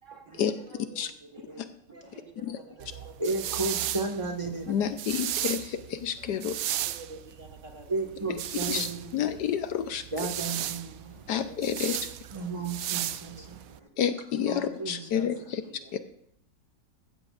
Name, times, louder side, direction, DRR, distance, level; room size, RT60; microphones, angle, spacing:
voice 1, 0.0-3.7 4.6-4.7 6.1-6.2 6.8-8.7 11.5-12.5 13.1-13.7 14.7-15.3 15.6-16.0, right 3 dB, 45° right, 4 dB, 1.8 m, -50 dB
sound 1, 2.8-13.8, right 12 dB, 70° right, 0.8 m, -35 dB
voice 2, 3.2-4.9 7.9-9.3 10.1-11.5 12.3-13.9 14.3-15.5, right 3 dB, 20° right, 3 dB, 1.5 m, -34 dB
voice 3, 4.7-6.8 8.7-8.9 9.1-10.0 11.3-12.0 14.0-15.6 15.9-16.0, left 9 dB, 70° left, 10 dB, 1.2 m, -29 dB
15.0 x 13.0 x 2.4 m, 0.72 s
omnidirectional pair, 1.9 m